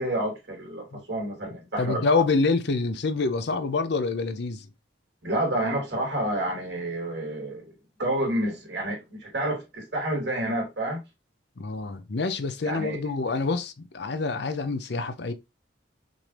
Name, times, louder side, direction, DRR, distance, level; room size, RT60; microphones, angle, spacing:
voice 1, 0.0-2.2 5.2-7.7 8.0-11.0 12.6-13.0, right 1 dB, 60° right, 2.9 m, -29 dB
voice 2, 1.8-4.7 11.6-15.3, left 3 dB, 60° left, 0.6 m, -26 dB
6.0 x 2.7 x 3.3 m
head